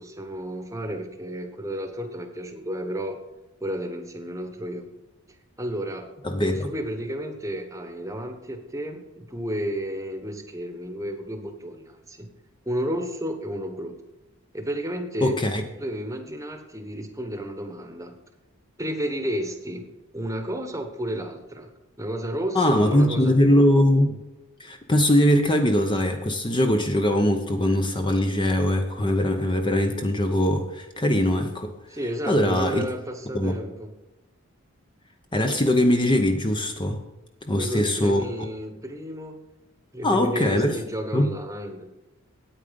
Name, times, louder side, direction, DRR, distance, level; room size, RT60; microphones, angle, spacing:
voice 1, 0.0-3.2 3.6-4.9 5.6-6.1 6.5-12.3 12.7-14.0 14.5-15.4 15.7-18.2 18.8-19.8 20.1-21.7 22.0-23.6 31.9-33.9 37.6-39.4 39.9-41.9, equal, 15° right, 6 dB, 1.1 m, -32 dB
voice 2, 6.2-6.7 15.2-15.6 22.5-24.2 24.6-31.7 32.3-32.8 33.3-33.6 35.3-37.0 37.4-38.2 40.0-40.8 41.1-41.3, left 1 dB, 20° left, 5 dB, 0.8 m, -21 dB
9.0 x 8.9 x 5.2 m, 1.0 s
head